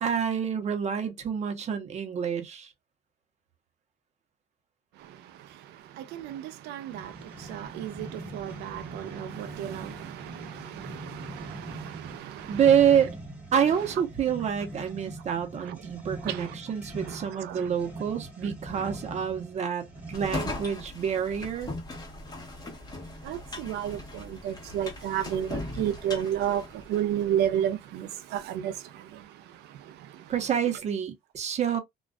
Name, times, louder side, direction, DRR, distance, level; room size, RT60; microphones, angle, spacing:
voice 1, 0.0-2.7 12.5-13.1 13.5-21.7 30.3-31.8, right 8 dB, 40° right, 0.8 m, -27 dB
voice 2, 6.7-7.1 7.5-9.9 11.4-11.5 16.3-16.4 23.3-24.0 24.3-26.6 26.9-28.7, right 10 dB, 80° right, 0.4 m, -30 dB
sound 1, 6.9-20.6, right 2 dB, 10° right, 1.1 m, -42 dB
sound 2, 20.1-27.3, left 2 dB, 25° left, 1.0 m, -39 dB
2.4 x 2.3 x 2.2 m
cardioid pair, 110°, 17 cm